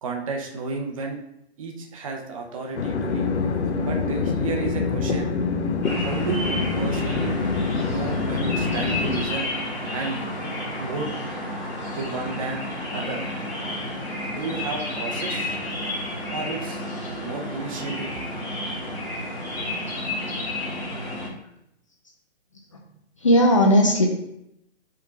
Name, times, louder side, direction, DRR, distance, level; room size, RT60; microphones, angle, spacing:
voice 1, 0.0-1.2 1.6-3.3 3.8-5.3 6.0-7.4 7.8-9.5 9.9-10.2 10.8-11.1 12.0-12.6 12.9-13.2 14.3-15.6 16.3-16.8 17.2-18.1, right 4 dB, 30° right, 2 dB, 0.7 m, -32 dB
sound 1, 2.7-9.2, left 4 dB, 80° left, 0.9 m, -25 dB
sound 2, 5.8-21.3, left 1 dB, 5° left, 0.9 m, -31 dB
voice 2, 23.2-24.1, equal, 30° left, 1 dB, 0.5 m, -17 dB
4.7 x 3.6 x 5.6 m, 0.79 s
hypercardioid pair, 170°, 33 cm